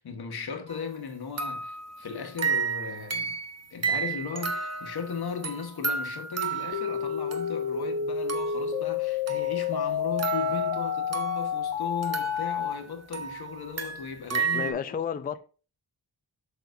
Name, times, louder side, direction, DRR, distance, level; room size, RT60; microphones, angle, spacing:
voice 1, 0.0-3.4 3.7-15.0, left 5 dB, 65° left, 1.3 m, -37 dB
sound 1, 0.7-0.9 1.4-7.9 8.3-8.8 9.3-11.6 12.0-14.7, right 6 dB, 40° right, 0.9 m, -33 dB
sound 2, 6.7-12.7, left 8 dB, 80° left, 1.4 m, -29 dB
voice 2, 14.3-15.4, left 8 dB, 25° left, 0.3 m, -32 dB
8.0 x 6.3 x 2.6 m
wide cardioid pair, 155°, 41 cm